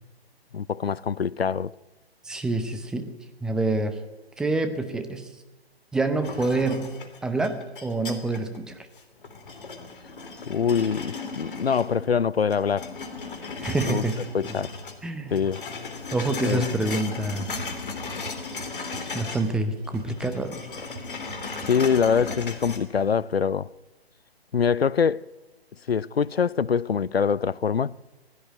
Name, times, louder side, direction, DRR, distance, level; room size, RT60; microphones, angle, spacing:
voice 1, 0.5-1.7 10.5-13.0 13.8-14.0 14.3-14.7 15.3-15.6 16.4-16.6 21.6-23.7 24.5-25.3 25.9-27.9, left 6 dB, 70° left, 0.7 m, -24 dB
voice 2, 2.2-3.1 3.4-4.0 4.4-5.3 5.9-6.9 7.2-8.9 13.6-14.1 15.0-15.4 16.1-17.5 19.1-20.7, right 2 dB, ahead, 0.7 m, -27 dB
sound 1, 6.2-8.6 9.0-12.2 12.5-15.0 15.3-19.5 19.8-22.8, left 4 dB, 55° left, 3.4 m, -36 dB
sound 2, 17.6-17.7 18.1-19.0 19.4-20.5 20.8-23.1, right 4 dB, 40° right, 2.4 m, -42 dB
19.5 x 16.0 x 9.3 m
figure-of-eight pair, 135°, 31 cm